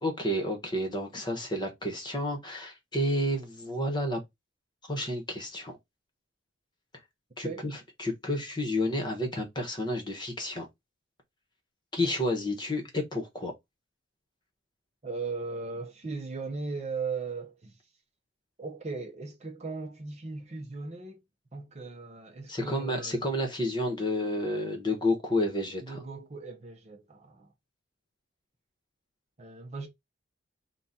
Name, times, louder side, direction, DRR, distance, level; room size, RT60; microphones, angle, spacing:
voice 1, 0.0-4.2 4.9-5.8 7.4-7.7 8.0-10.7 11.9-13.5 22.5-26.0, left 1 dB, 20° left, 1.1 m, -30 dB
voice 2, 15.0-17.8 18.6-21.2 21.5-23.3 25.8-27.5 29.4-29.9, right 4 dB, 35° right, 0.7 m, -38 dB
3.8 x 2.3 x 4.1 m
head